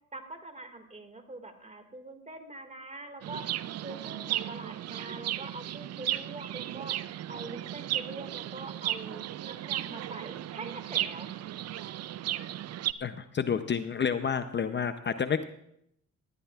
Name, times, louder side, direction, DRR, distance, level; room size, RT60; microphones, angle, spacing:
voice 1, 0.1-3.4 3.8-7.0 7.3-11.4, right 2 dB, 25° right, 7 dB, 2.0 m, -44 dB
Chirp tweet, 3.2-12.9, right 13 dB, 55° right, 0.5 m, -35 dB
voice 2, 13.0-15.4, left 7 dB, 35° left, 10 dB, 0.6 m, -29 dB
18.5 x 13.5 x 2.4 m, 0.75 s
cardioid pair, 85°, 30 cm